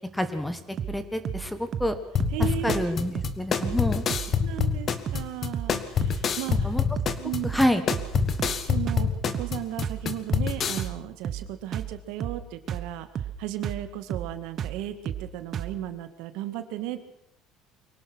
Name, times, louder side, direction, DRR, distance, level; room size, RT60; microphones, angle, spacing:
voice 1, 0.1-0.6 0.9-2.0 2.6-4.0 6.6-6.8 7.4-7.8, left 1 dB, 5° left, 10 dB, 1.6 m, -27 dB
sound 1, 0.8-1.0 1.3-1.5 1.7-1.9 2.2-2.4 2.7-2.9 3.2-3.4 3.6-3.8 4.1-4.3 4.6-4.8 5.1-5.3 5.5-5.8 6.0-6.2 6.5-6.7 7.0-7.2 7.4-7.7 7.9-8.6 8.9-9.1 9.3-9.6 9.8-10.0 10.3-10.5 10.8-11.0 11.2-11.5 11.7-11.9 12.2-12.4 12.7-12.9 13.2-13.4 13.6-13.8 14.1-14.3 14.6-14.8 15.1-15.3 15.5-15.8, right 9 dB, 35° right, 1.2 m, -32 dB
sound 2, 2.2-10.8, left 7 dB, 35° left, 1.4 m, -26 dB
voice 2, 2.3-2.9 3.6-4.0 4.4-6.8 7.2-7.5 8.6-13.1 13.4-17.0, right 13 dB, 75° right, 9 dB, 2.0 m, -35 dB
24.0 x 17.5 x 6.2 m, 0.75 s
cardioid pair, 150°, 0 cm